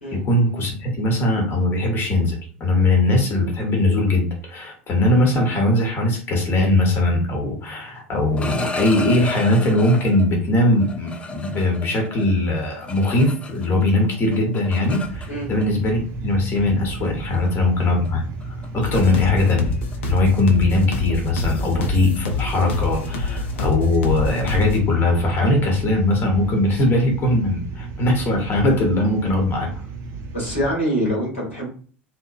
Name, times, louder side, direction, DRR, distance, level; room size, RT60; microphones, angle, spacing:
voice 1, 0.1-19.7 20.1-29.7, left 2 dB, 35° left, 1 dB, 0.9 m, -20 dB
sound 1, 8.2-10.3 10.8-13.9 14.1-15.7 16.6-16.7 17.0-17.4 17.8-18.1 18.4-18.7 18.9-19.2 19.5-24.8, left 3 dB, 15° left, 0.4 m, -35 dB
sound 2, 15.0-30.7, right 3 dB, 45° right, 0.5 m, -34 dB
sound 3, 18.8-24.8, left 3 dB, 70° left, 0.5 m, -27 dB
voice 2, 30.3-31.7, equal, 90° left, -5 dB, 1.3 m, -24 dB
2.8 x 2.0 x 2.4 m, 0.43 s
figure-of-eight pair, 70°, 7 cm